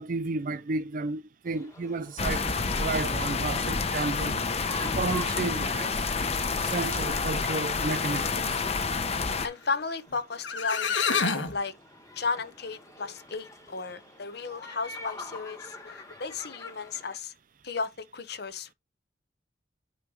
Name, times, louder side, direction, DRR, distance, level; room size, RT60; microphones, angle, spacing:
voice 1, 0.0-4.4 4.8-5.9 6.6-8.6, right 3 dB, 45° right, 0.5 m, -32 dB
sound 1, 1.5-17.2, left 2 dB, 15° left, 1.3 m, -47 dB
sound 2, 2.2-9.5, left 4 dB, 35° left, 0.8 m, -29 dB
voice 2, 9.4-11.7 12.2-17.3 17.6-18.7, left 4 dB, 60° left, 1.0 m, -34 dB
sound 3, 10.1-10.2 10.4-11.6, left 5 dB, 85° left, 1.4 m, -27 dB
9.1 x 3.1 x 4.8 m
head